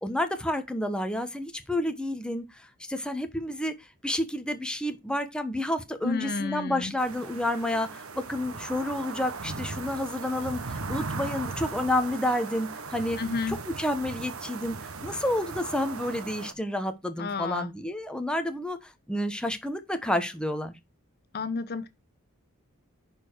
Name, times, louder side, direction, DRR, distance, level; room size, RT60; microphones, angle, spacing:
voice 1, 0.0-2.5 2.9-3.7 4.0-13.2 13.5-20.7, left 1 dB, 5° left, 1.1 m, -30 dB
voice 2, 6.0-6.9 13.2-13.6 17.2-17.7 21.3-21.9, left 4 dB, 45° left, 0.8 m, -31 dB
sound 1, 7.0-16.5, right 4 dB, 65° right, 1.2 m, -38 dB
11.0 x 4.5 x 4.6 m
head